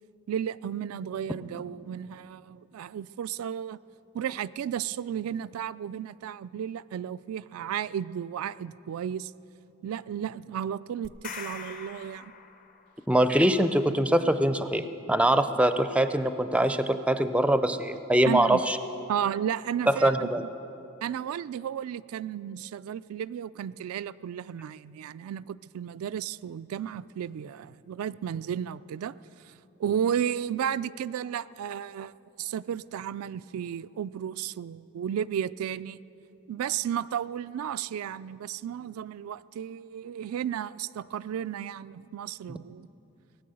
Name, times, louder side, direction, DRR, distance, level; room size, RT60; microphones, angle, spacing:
voice 1, 0.3-3.8 4.1-9.3 9.8-12.3 18.2-18.6 19.1-20.3 21.0-29.2 29.4-29.5 29.8-36.0 36.5-42.9, right 9 dB, 85° right, 15 dB, 0.3 m, -33 dB
sound 1, 11.0-13.0, left 5 dB, 40° left, 0.7 m, -42 dB
voice 2, 13.1-18.8 19.9-20.4 42.5-42.6, right 1 dB, 5° right, 10 dB, 0.4 m, -23 dB
18.0 x 9.3 x 7.7 m, 3.0 s
head